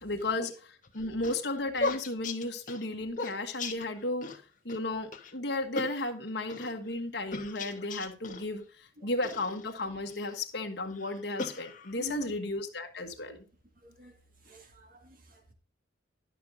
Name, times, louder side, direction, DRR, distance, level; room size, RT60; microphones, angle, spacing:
voice 1, 0.0-8.6 9.0-13.4, left 2 dB, 60° left, 1.5 m, -34 dB
sound 1, 0.8-4.4 4.7-4.8 5.1-5.3 5.8-6.7 7.3-8.5 9.2-10.3 10.9-12.1, left 3 dB, 45° left, 1.2 m, -37 dB
voice 2, 11.9-12.3 13.3-13.4 13.8-14.1 14.5-15.5, equal, 45° right, 1.9 m, -45 dB
11.5 x 6.1 x 3.8 m
head